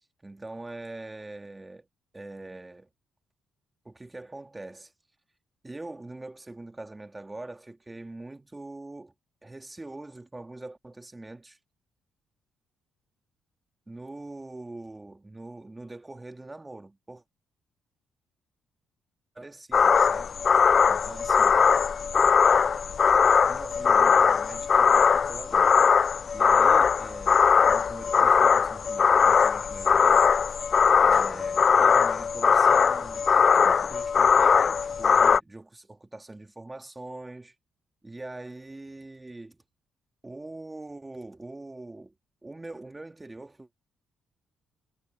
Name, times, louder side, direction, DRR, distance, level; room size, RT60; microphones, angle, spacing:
voice 1, 0.2-1.9 2.1-2.9 3.8-4.9 5.6-9.1 9.4-11.6 13.9-17.2 19.3-20.3 20.9-21.6 23.5-30.3 31.0-37.5 38.0-39.6 40.2-42.1 42.4-43.7, right 2 dB, 15° right, 2.5 m, -43 dB
sound 1, 19.7-35.4, left 6 dB, 45° left, 0.5 m, -20 dB
cardioid pair, 90°, 0 cm